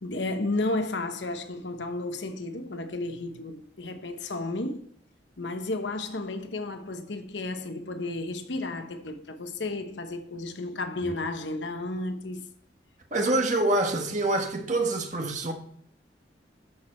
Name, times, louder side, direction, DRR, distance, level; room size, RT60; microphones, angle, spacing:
voice 1, 0.0-4.9 5.4-12.4, left 2 dB, 75° left, 1.0 m, -33 dB
voice 2, 13.1-15.5, right 2 dB, 40° right, 1.5 m, -26 dB
11.5 x 6.3 x 4.3 m
head